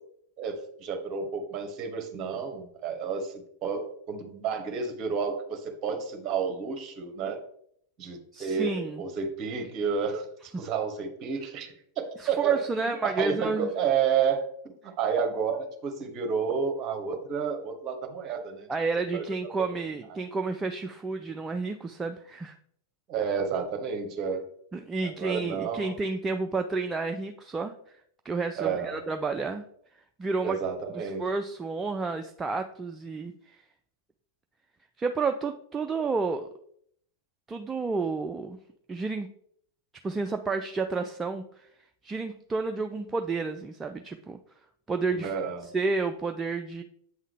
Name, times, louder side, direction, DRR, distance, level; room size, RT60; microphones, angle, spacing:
voice 1, 0.4-7.4 8.0-18.7 19.1-19.2 23.1-24.5 25.0-25.9 28.6-29.0 30.4-31.3 45.1-45.7, right 6 dB, 35° right, 5 dB, 1.1 m, -31 dB
voice 2, 8.3-9.0 12.2-13.7 18.7-22.6 24.7-27.7 28.2-29.6 30.2-30.6 30.9-33.6 35.0-36.5 37.5-38.6 38.9-39.3 40.0-41.7 42.0-44.4 44.9-45.3 45.7-46.8, right 4 dB, 15° right, 6 dB, 0.3 m, -30 dB
8.2 x 3.6 x 3.4 m, 0.68 s
figure-of-eight pair, 90°, 0 cm